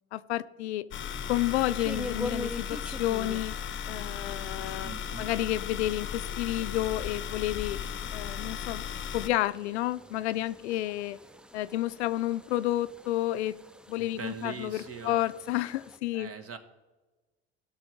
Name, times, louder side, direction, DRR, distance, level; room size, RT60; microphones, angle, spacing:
voice 1, 0.1-0.8 1.3-3.6 3.9-7.8 8.1-8.9 9.1-11.2 11.5-13.6 13.9-16.3, left 15 dB, 85° left, 0.5 m, -30 dB
sound 1, 0.9-9.3, left 8 dB, 35° left, 0.7 m, -36 dB
sound 2, 1.1-16.0, left 1 dB, 5° right, 0.4 m, -45 dB
voice 2, 4.8-5.3 14.0-15.2 16.1-16.6, right 5 dB, 45° right, 1.4 m, -41 dB
17.5 x 6.4 x 3.6 m
hypercardioid pair, 65°, 33 cm